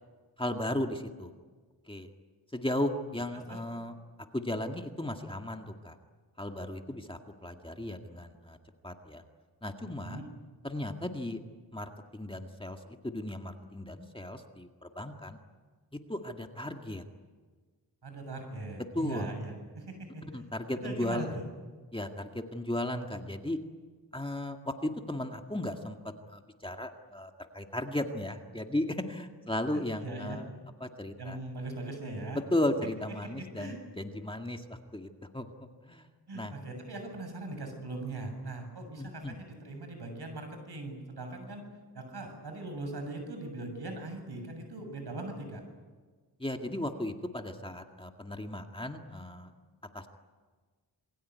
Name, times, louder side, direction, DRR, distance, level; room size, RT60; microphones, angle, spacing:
voice 1, 0.4-1.3 1.9-2.1 2.5-3.9 4.3-6.0 6.4-8.6 8.8-9.2 9.6-10.2 10.6-11.4 11.7-15.4 15.9-17.0 18.9-19.3 20.3-21.4 21.9-23.6 24.1-30.5 30.8-31.4 32.3-36.1 36.3-36.5 39.0-39.4 46.4-49.5 49.9-50.1, left 1 dB, 15° left, 4 dB, 2.0 m, -35 dB
voice 2, 9.8-10.2 18.0-20.2 20.8-21.4 29.7-30.4 31.2-32.4 33.4-33.8 36.3-41.7 41.9-45.6, right 2 dB, 70° right, 5 dB, 7.4 m, -40 dB
27.5 x 22.0 x 9.6 m, 1.4 s
wide cardioid pair, 95°, 41 cm